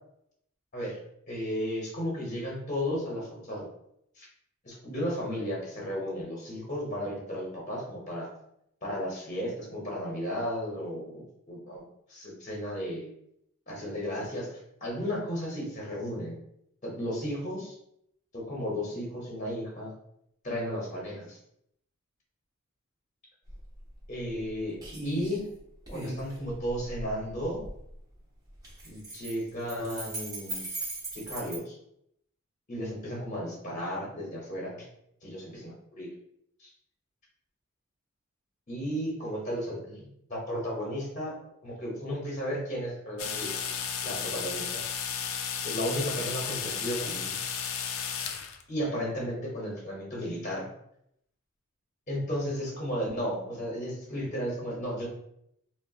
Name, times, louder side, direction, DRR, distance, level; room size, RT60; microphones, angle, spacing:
voice 1, 1.3-3.7 4.2-4.3 4.6-8.3 8.8-11.8 12.1-13.1 13.7-14.5 14.8-16.4 16.8-17.7 18.3-19.9 20.4-21.4 24.1-24.7 25.0-25.5 25.9-27.6 28.8-30.7 31.1-31.8 32.7-34.9 35.2-36.1 36.6-36.7 38.7-41.4 41.6-43.5 44.0-44.8 45.6-47.4 48.7-50.7 52.1-55.1, equal, 35° left, -4 dB, 0.8 m, -34 dB
sound 1, 23.5-23.6 24.0-24.5 24.8-25.4 25.9-27.8 28.6-31.6, right 1 dB, 15° right, 0.8 m, -38 dB
sound 2, 43.2-48.6, left 7 dB, 75° left, 0.3 m, -33 dB
3.7 x 2.1 x 2.3 m, 0.75 s
head